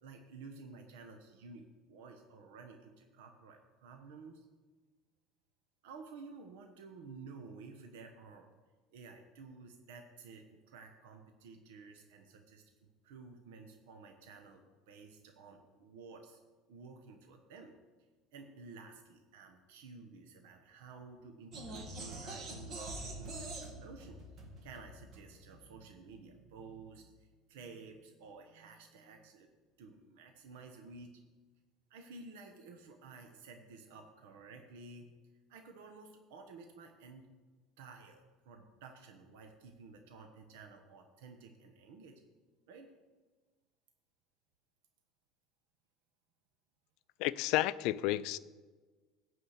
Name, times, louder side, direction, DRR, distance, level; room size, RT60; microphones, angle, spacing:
voice 1, 0.0-4.5 5.8-8.5 8.9-16.4 16.7-17.8 18.3-29.5 29.8-31.1 31.9-35.1 35.5-37.3 37.8-42.2 42.7-42.9, right 4 dB, 85° right, 4 dB, 1.1 m, -53 dB
sound 1, 21.5-25.7, right 2 dB, 40° right, 2.3 m, -45 dB
voice 2, 47.2-48.4, left 16 dB, 65° left, 17 dB, 0.4 m, -31 dB
12.0 x 4.8 x 8.2 m, 1.3 s
supercardioid pair, 130°, 0 cm